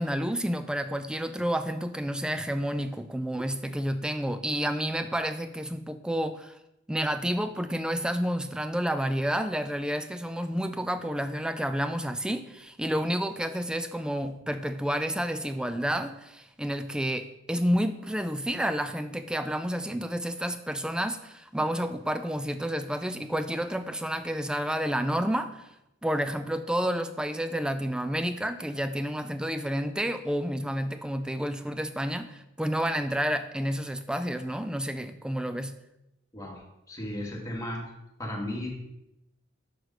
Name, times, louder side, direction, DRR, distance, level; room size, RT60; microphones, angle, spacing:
voice 1, 0.0-6.6 6.9-25.7 26.0-35.7, equal, 5° right, 10 dB, 0.3 m, -30 dB
voice 2, 36.3-37.8 38.2-38.7, left 1 dB, 15° left, -2 dB, 1.4 m, -35 dB
6.2 x 4.8 x 5.1 m, 0.88 s
head